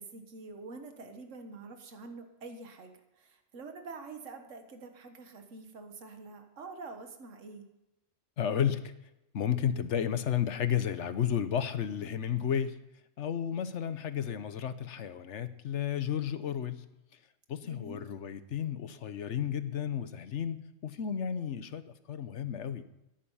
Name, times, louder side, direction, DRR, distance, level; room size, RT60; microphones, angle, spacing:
voice 1, 0.0-7.7 17.6-18.1, right 3 dB, 75° right, 6 dB, 1.7 m, -46 dB
voice 2, 8.4-8.9 9.3-12.8 13.2-16.9 17.5-22.8, left 9 dB, 65° left, 12 dB, 1.1 m, -32 dB
14.5 x 10.5 x 5.6 m, 0.91 s
omnidirectional pair, 1.3 m